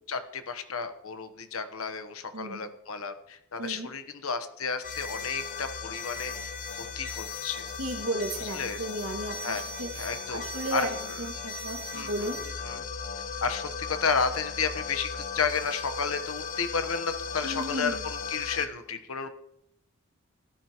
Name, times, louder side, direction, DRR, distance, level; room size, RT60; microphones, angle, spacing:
voice 1, 0.1-7.7 8.3-8.8 9.4-9.6 9.9-10.4 10.7-11.2 11.9-12.3 12.6-12.8 13.4-19.3, left 5 dB, 70° left, 9 dB, 1.1 m, -32 dB
voice 2, 2.3-2.7 3.6-3.9 7.8-12.4 17.4-18.0, right 2 dB, 80° right, 2 dB, 2.1 m, -34 dB
sound 1, 4.8-18.7, left 5 dB, 40° left, 1.0 m, -37 dB
18.0 x 12.5 x 3.0 m, 0.83 s
head